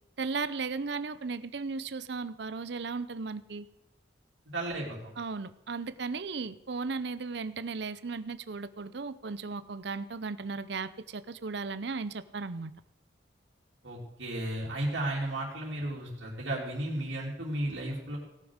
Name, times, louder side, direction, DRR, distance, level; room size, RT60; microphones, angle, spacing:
voice 1, 0.2-3.7 5.2-12.7, right 4 dB, 65° right, 15 dB, 0.6 m, -36 dB
voice 2, 4.5-5.1 13.8-18.2, right 1 dB, 85° right, -4 dB, 3.3 m, -34 dB
17.5 x 7.1 x 6.5 m, 0.95 s
head